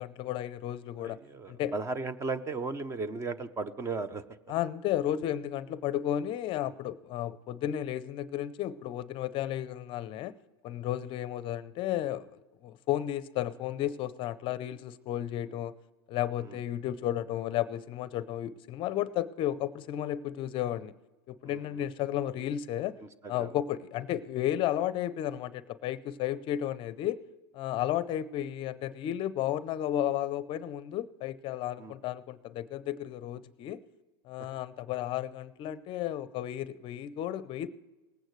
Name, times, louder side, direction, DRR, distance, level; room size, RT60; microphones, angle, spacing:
voice 1, 0.0-1.2 1.5-1.7 4.5-10.3 10.6-12.3 12.6-15.8 16.1-20.9 21.3-23.0 23.3-27.2 27.5-33.8 34.3-37.7, left 12 dB, 40° left, 16 dB, 0.6 m, -33 dB
voice 2, 1.0-4.2 6.6-6.8 16.4-16.6 21.4-21.8 23.0-23.5 31.8-32.0 34.4-34.5, right 3 dB, 20° right, 15 dB, 0.7 m, -36 dB
19.5 x 8.9 x 3.2 m, 1.1 s
hypercardioid pair, 120°, 14 cm